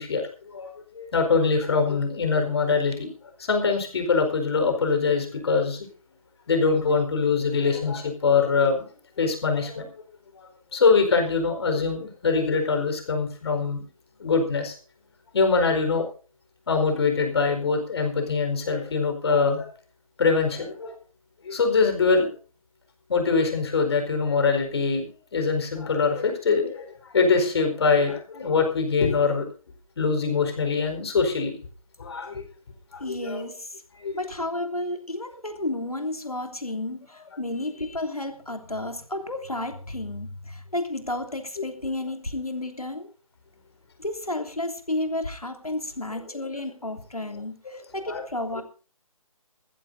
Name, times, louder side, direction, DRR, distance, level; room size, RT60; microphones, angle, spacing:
voice 1, 0.0-3.1 3.4-5.9 6.5-8.9 9.2-9.9 10.7-13.9 14.2-14.7 15.3-16.1 16.7-19.7 20.2-20.9 21.4-22.3 23.1-25.1 25.3-29.4 30.0-31.5 32.0-32.4 32.9-33.4 34.0-34.2 48.1-48.2, left 4 dB, 45° left, 5 dB, 4.7 m, -23 dB
voice 2, 33.0-33.8 34.1-43.1 44.0-48.6, left 1 dB, 90° left, 5 dB, 3.1 m, -32 dB
21.5 x 15.0 x 2.7 m, 0.36 s
figure-of-eight pair, 145°, 18 cm